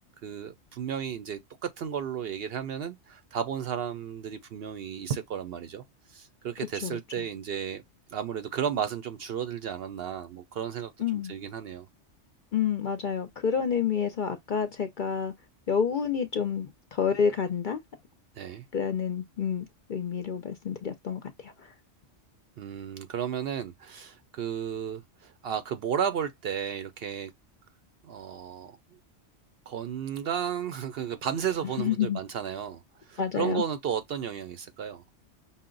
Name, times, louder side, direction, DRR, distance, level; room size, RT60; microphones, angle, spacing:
voice 1, 0.2-5.8 6.1-7.8 8.1-11.9 18.4-18.6 22.6-27.3 28.0-28.8 29.7-35.0, right 8 dB, 65° right, 0.7 m, -33 dB
voice 2, 11.0-11.3 12.5-15.3 15.7-17.8 18.7-21.5 31.8-32.2 33.2-33.6, left 7 dB, 55° left, 0.6 m, -29 dB
5.6 x 2.1 x 3.7 m
omnidirectional pair, 1.3 m